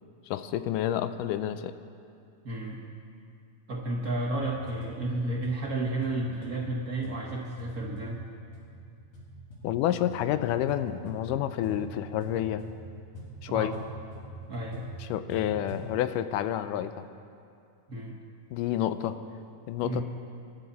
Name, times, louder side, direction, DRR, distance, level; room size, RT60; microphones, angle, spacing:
voice 1, 0.3-1.7 9.6-12.6 13.4-13.7 15.0-17.1 18.5-19.2 19.7-20.0, left 11 dB, 90° left, 11 dB, 2.2 m, -29 dB
voice 2, 2.4-2.8 3.7-8.2 13.5-13.8 14.5-14.9 17.9-18.2 19.8-20.0, right 2 dB, 50° right, -2 dB, 1.0 m, -32 dB
sound 1, 4.2-15.9, right 1 dB, 70° left, 4.0 m, -45 dB
26.0 x 11.0 x 4.1 m, 2.4 s
omnidirectional pair, 3.6 m